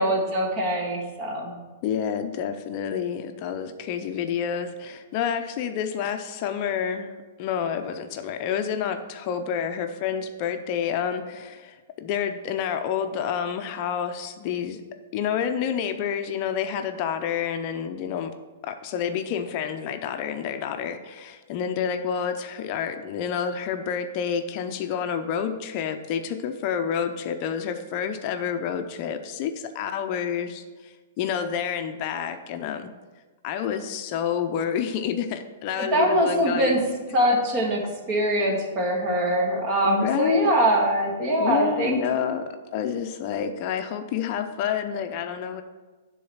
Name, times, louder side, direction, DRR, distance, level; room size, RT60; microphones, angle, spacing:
voice 1, 0.0-1.6 35.8-36.8 37.1-37.8 38.1-42.0, right 1 dB, 30° right, 0 dB, 1.7 m, -23 dB
voice 2, 1.8-14.8 15.1-18.3 18.6-32.9 33.4-36.8 39.8-40.5 41.4-45.6, left 8 dB, 40° left, 7 dB, 0.5 m, -29 dB
10.0 x 3.9 x 5.7 m, 1.3 s
hypercardioid pair, 150°, 0 cm